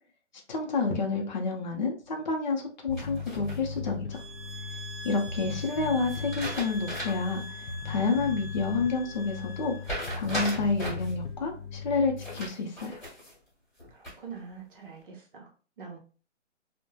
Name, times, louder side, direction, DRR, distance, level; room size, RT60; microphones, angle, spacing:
voice 1, 0.5-4.2 5.0-9.8 10.1-13.0, left 4 dB, 40° left, 1 dB, 0.5 m, -29 dB
Bass guitar, 2.9-12.5, left 6 dB, 80° left, 0.7 m, -38 dB
sound 1, 3.0-3.9 6.1-7.4 7.7-7.8 9.8-11.1 12.2-13.4 13.8-14.4, equal, 5° left, 1.1 m, -37 dB
sound 2, 4.1-10.0, right 1 dB, 25° right, 0.5 m, -44 dB
voice 2, 13.9-16.0, right 6 dB, 45° right, 0 dB, 0.8 m, -45 dB
2.9 x 2.1 x 2.2 m, 0.37 s
hypercardioid pair, 170°, 36 cm